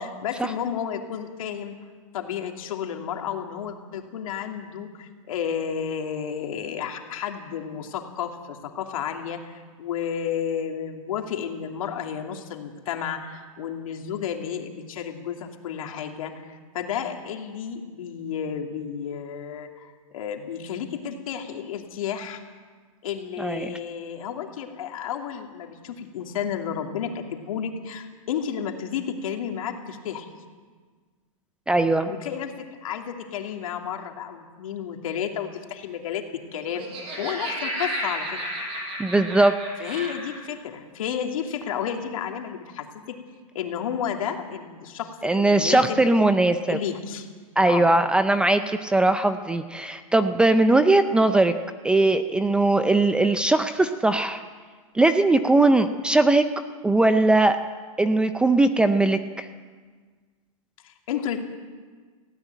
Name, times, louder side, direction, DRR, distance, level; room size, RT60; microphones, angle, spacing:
voice 1, 0.0-1.7 2.1-22.4 23.0-30.3 32.0-36.2 36.5-36.9 37.2-38.4 39.8-43.2 43.5-46.0 46.7-47.3 47.7-47.9 60.8-61.4, left 8 dB, 70° left, 3 dB, 2.7 m, -32 dB
voice 2, 23.4-23.8 31.7-32.1 39.0-39.5 39.8-40.1 45.2-46.8 47.6-51.5 51.8-54.4 54.9-56.5 56.8-57.6 58.0-59.5, right 2 dB, 5° right, 9 dB, 0.5 m, -20 dB
Laughter, 36.6-40.4, equal, 30° right, 5.4 m, -32 dB
17.5 x 16.5 x 9.1 m, 1.5 s
hypercardioid pair, 145°, 18 cm